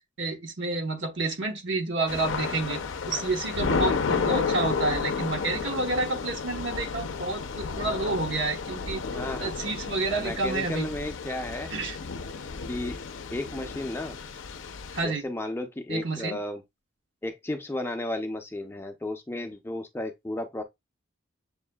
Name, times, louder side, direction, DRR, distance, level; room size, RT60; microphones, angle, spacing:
voice 1, 0.2-2.8 3.1-9.0 9.4-10.9 11.7-12.0 14.9-15.2 15.9-16.4, right 2 dB, 70° right, 1.0 m, -29 dB
Thunder / Rain, 2.1-15.0, left 5 dB, 75° left, 0.5 m, -32 dB
voice 2, 9.1-9.6 10.2-11.7 12.7-13.0 13.3-14.1 15.0-16.6 17.2-20.6, left 1 dB, 10° left, 0.5 m, -33 dB
7.1 x 2.6 x 2.2 m
head